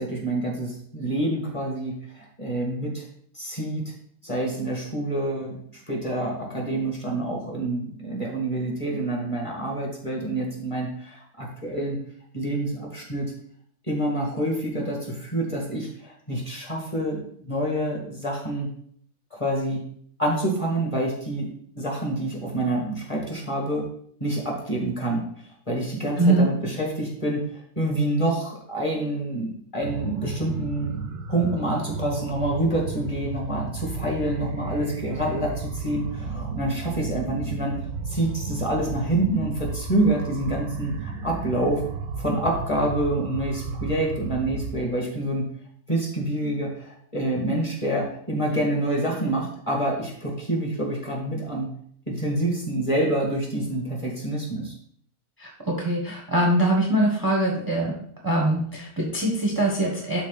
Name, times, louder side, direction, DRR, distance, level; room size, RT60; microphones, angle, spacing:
voice 1, 0.0-3.0 3.3-3.9 4.2-12.0 12.3-13.3 13.9-18.7 19.3-19.8 20.2-23.9 24.2-25.3 25.7-27.5 27.8-31.0 31.3-37.8 38.1-41.8 42.2-45.5 45.9-51.7 52.1-54.7, right 1 dB, 20° left, -2 dB, 2.4 m, -27 dB
voice 2, 26.2-26.5 55.4-57.9 58.2-60.2, right 1 dB, 15° right, -2 dB, 1.3 m, -22 dB
sound 1, 29.8-44.8, right 4 dB, 85° right, 1.5 m, -33 dB
11.5 x 4.0 x 4.2 m, 0.62 s
omnidirectional pair, 1.6 m